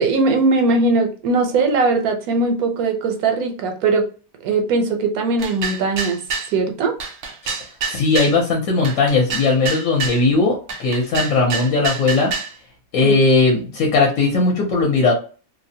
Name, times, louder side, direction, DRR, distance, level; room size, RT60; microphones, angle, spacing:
voice 1, 0.0-4.1 4.4-6.2 6.5-6.9 13.0-13.2, right 3 dB, 80° right, 5 dB, 1.1 m, -19 dB
sound 1, 5.4-6.5 7.0-8.4 8.8-10.2 10.7-12.5, right 5 dB, 65° right, 0.8 m, -27 dB
voice 2, 7.9-12.3 12.9-15.1, left 3 dB, 70° left, 0 dB, 1.0 m, -18 dB
2.6 x 2.0 x 2.7 m, 0.37 s
omnidirectional pair, 1.6 m